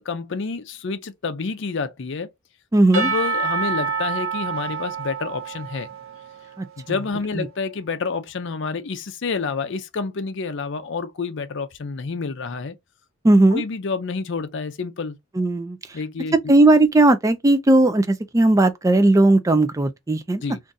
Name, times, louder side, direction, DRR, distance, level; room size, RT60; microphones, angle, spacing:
voice 1, 0.0-2.3 2.9-5.9 6.8-12.7 13.5-15.1 15.9-16.4 20.4-20.6, left 4 dB, 55° left, 0.5 m, -28 dB
voice 2, 2.7-3.1 6.6-7.0 7.4-7.5 13.2-13.6 15.3-16.0 16.5-20.4, right 2 dB, 15° right, 0.3 m, -17 dB
Percussion / Church bell, 2.9-6.8, right 5 dB, 65° right, 0.8 m, -27 dB
2.5 x 2.4 x 3.9 m
head